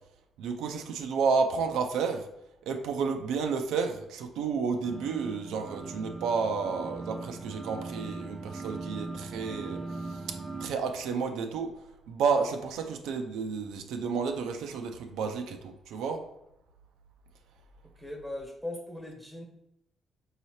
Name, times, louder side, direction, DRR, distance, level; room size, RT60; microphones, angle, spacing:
voice 1, 0.4-2.3 2.7-10.2 10.6-11.7 12.1-16.2, right 5 dB, 90° right, 5 dB, 0.4 m, -31 dB
sound 1, 4.8-10.7, right 3 dB, 20° right, 0.5 m, -40 dB
voice 2, 17.8-19.4, left 1 dB, 5° left, -1 dB, 1.2 m, -39 dB
4.7 x 2.8 x 3.1 m, 0.86 s
cardioid pair, 90°, 0 cm